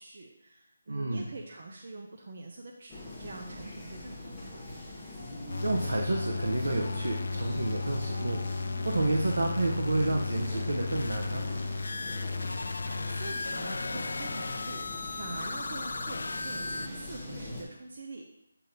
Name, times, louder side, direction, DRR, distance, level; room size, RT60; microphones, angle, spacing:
voice 1, 0.0-4.6 12.8-18.3, right 3 dB, 40° right, 0 dB, 0.5 m, -45 dB
voice 2, 0.9-1.3 5.6-8.4 8.8-11.4, right 2 dB, 85° right, 0 dB, 0.9 m, -30 dB
sound 1, 2.9-17.6, left 2 dB, 5° left, 1.0 m, -43 dB
sound 2, 5.5-16.9, left 3 dB, 60° left, 0.3 m, -34 dB
7.8 x 2.9 x 5.1 m, 0.82 s
hypercardioid pair, 180°, 0 cm